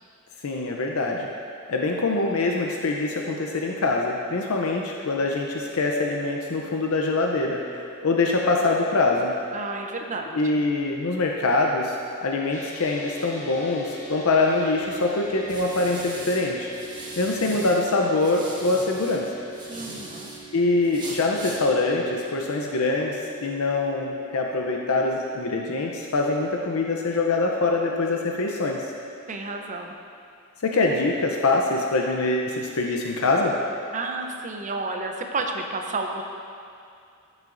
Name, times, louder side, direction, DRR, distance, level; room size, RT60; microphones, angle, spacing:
voice 1, 0.4-1.3 1.7-9.3 10.3-16.7 17.2-19.3 20.5-28.8 30.6-33.6, left 3 dB, 70° left, 0 dB, 0.6 m, -24 dB
voice 2, 9.5-10.6 19.7-20.3 29.3-29.9 33.9-36.2, right 3 dB, 35° right, 3 dB, 0.6 m, -31 dB
sound 1, 12.5-29.9, right 2 dB, 35° left, 1.2 m, -44 dB
sound 2, 14.5-17.8 18.1-20.4 20.8-21.6, right 1 dB, 20° right, 1.3 m, -40 dB
13.0 x 6.4 x 2.6 m, 2.4 s
head